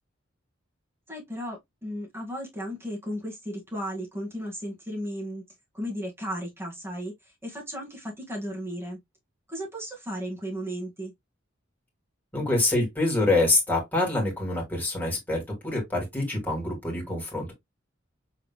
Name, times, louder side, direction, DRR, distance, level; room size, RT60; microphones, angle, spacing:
voice 1, 1.1-5.4 5.7-7.1 7.4-9.0 9.5-11.1, equal, 10° right, 2.0 m, -35 dB
voice 2, 12.3-17.5, left 2 dB, 10° left, 2.5 m, -26 dB
5.5 x 3.7 x 2.2 m
head